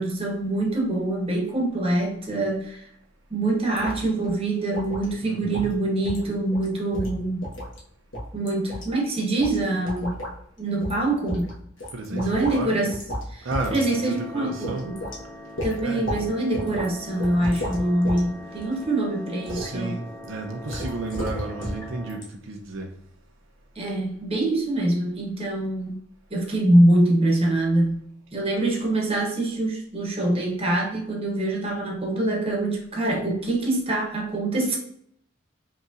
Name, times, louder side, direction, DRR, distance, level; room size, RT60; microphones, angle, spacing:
voice 1, 0.0-2.9 3.3-7.4 8.3-10.2 10.6-11.5 12.1-13.0 13.3-15.0 15.6-20.0 23.8-26.0 26.3-28.0 28.3-34.8, right 1 dB, 30° right, 0 dB, 1.0 m, -24 dB
sound 1, 3.7-4.0 4.2-4.3 4.7-5.1 5.5-5.7 6.0-6.2 6.5-6.7 6.9-7.8 8.1-8.8 9.4-9.6 9.8-10.3 10.8-11.0 11.3-12.6 12.9-13.2 13.5-13.8 14.1-14.2 14.6-15.2 15.6-16.2 16.5-16.9 17.2-18.2 18.5-18.8 19.4-19.7 20.7-21.8 22.1-22.2, equal, 65° left, 1.3 m, -32 dB
voice 2, 5.2-5.7 11.9-12.9 13.4-14.9 15.8-16.1 17.1-17.7 19.5-22.9, right 2 dB, 75° right, 2 dB, 0.6 m, -33 dB
sound 2, 13.5-22.2, left 1 dB, 10° left, 0.5 m, -42 dB
5.2 x 2.9 x 2.5 m, 0.66 s
head